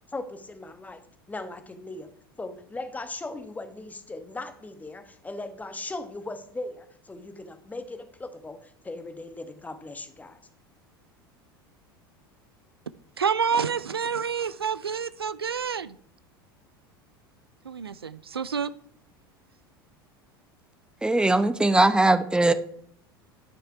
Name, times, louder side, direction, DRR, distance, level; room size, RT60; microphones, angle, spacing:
voice 1, 0.1-1.0 1.3-2.1 2.4-10.4, left 2 dB, 10° left, 9 dB, 1.2 m, -38 dB
voice 2, 13.2-16.0 17.6-18.7, right 6 dB, 85° right, 17 dB, 0.4 m, -28 dB
voice 3, 21.0-22.5, right 2 dB, 5° right, 12 dB, 0.8 m, -20 dB
12.0 x 6.4 x 4.6 m, 0.63 s
figure-of-eight pair, 75°, 12 cm